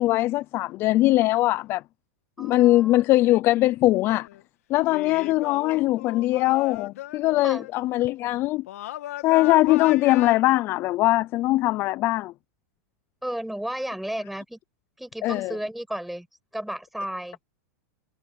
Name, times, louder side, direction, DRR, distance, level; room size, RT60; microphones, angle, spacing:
voice 1, 0.0-1.8 2.4-4.3 4.7-8.7 9.2-12.3 15.2-15.6, left 17 dB, 30° left, 0.4 m, -21 dB
voice 2, 2.4-3.0 7.4-7.7 13.2-14.6 15.0-16.3 16.5-17.4, right 1 dB, ahead, 7.6 m, -33 dB
sound 1, 4.0-4.4 4.9-7.7 8.7-10.4, left 15 dB, 70° left, 2.0 m, -37 dB
supercardioid pair, 160°, 8 cm